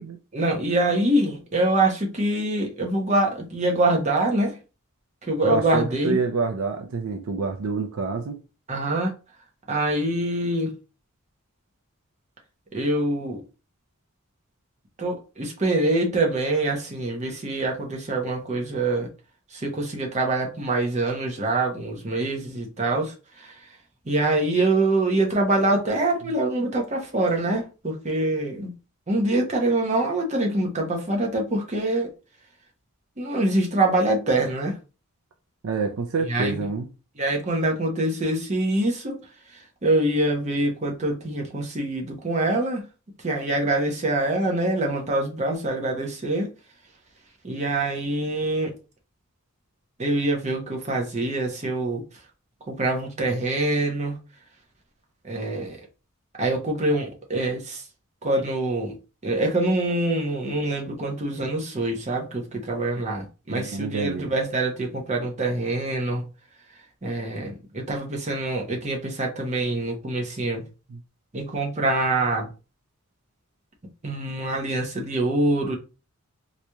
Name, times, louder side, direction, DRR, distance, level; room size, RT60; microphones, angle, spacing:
voice 1, 0.3-4.6 5.2-6.2 8.7-9.1 9.7-10.7 12.7-13.4 15.0-19.1 19.5-23.5 24.1-28.7 29.1-32.1 33.2-34.7 36.3-36.6 37.2-39.2 39.8-42.8 43.2-46.5 47.4-48.7 50.0-52.0 52.7-54.2 55.2-55.8 56.4-57.8 58.2-58.9 59.2-66.2 67.0-70.6 71.3-72.5 74.0-75.8, right 2 dB, 30° right, 0.8 m, -25 dB
voice 2, 5.4-8.4 26.2-26.3 35.6-36.9 63.5-64.3 70.9-71.0, right 4 dB, 65° right, 0.4 m, -27 dB
4.0 x 3.1 x 2.2 m
head